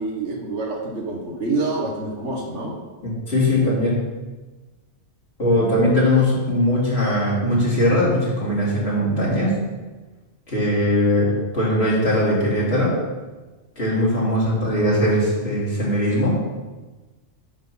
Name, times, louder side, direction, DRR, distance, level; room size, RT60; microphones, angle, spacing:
voice 1, 0.0-2.8 5.8-6.0, right 3 dB, 80° right, -1 dB, 1.8 m, -27 dB
voice 2, 3.0-4.1 5.4-9.6 10.5-12.9 13.8-16.4, left 1 dB, 65° left, -7 dB, 3.3 m, -20 dB
10.5 x 3.9 x 6.1 m, 1.2 s
omnidirectional pair, 1.2 m